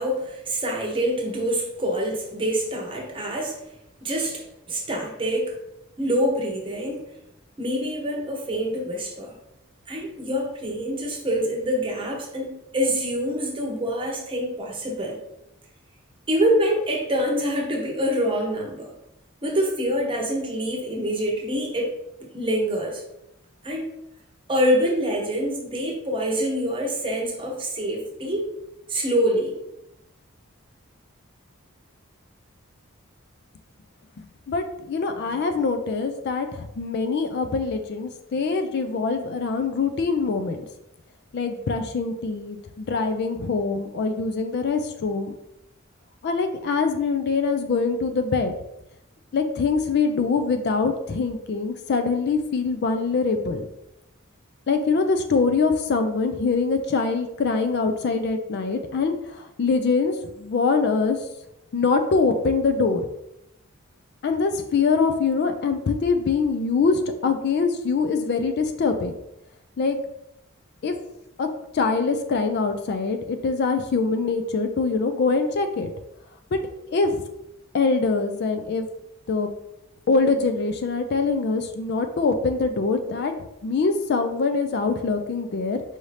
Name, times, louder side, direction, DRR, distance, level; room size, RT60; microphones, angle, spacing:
voice 1, 0.0-3.6 4.0-5.5 6.0-7.1 7.6-9.3 9.9-15.2 16.3-18.9 19.4-21.9 22.3-23.0 23.6-23.9 24.5-28.5 28.9-29.6, equal, 25° right, 0 dB, 0.9 m, -25 dB
voice 2, 34.5-40.6 41.3-45.3 46.2-48.5 49.3-53.7 54.7-61.2 61.7-63.0 64.2-69.1 69.8-70.0 70.8-71.0 71.4-71.5 71.7-75.9 76.5-76.6 76.9-77.2 77.7-78.9 79.3-79.5 80.1-83.3 83.6-85.8, left 4 dB, 50° left, 7 dB, 0.4 m, -23 dB
4.9 x 2.7 x 3.2 m, 0.84 s
head